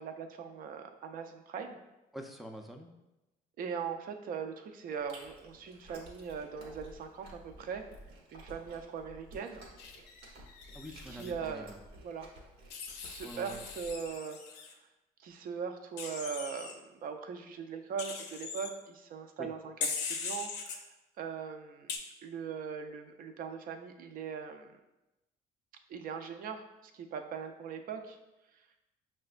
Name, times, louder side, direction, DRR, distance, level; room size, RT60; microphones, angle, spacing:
voice 1, 0.0-1.8 3.6-7.8 8.3-9.6 11.1-11.7 12.0-12.3 13.0-14.4 14.7-14.8 15.2-21.9 22.2-24.8 25.9-28.2, right 6 dB, 60° right, 6 dB, 0.5 m, -40 dB
voice 2, 2.1-2.9 10.7-11.8 13.2-13.6 19.4-19.5, equal, ahead, 2 dB, 0.4 m, -45 dB
Chewing mastication, 4.9-14.2, right 1 dB, 90° right, 1.0 m, -53 dB
Wild animals, 9.8-11.3 12.7-14.7 16.0-16.7 18.0-18.7 19.8-20.8 21.9-22.0, left 6 dB, 90° left, 0.5 m, -40 dB
5.9 x 2.2 x 2.4 m, 0.98 s
cardioid pair, 110°, 17 cm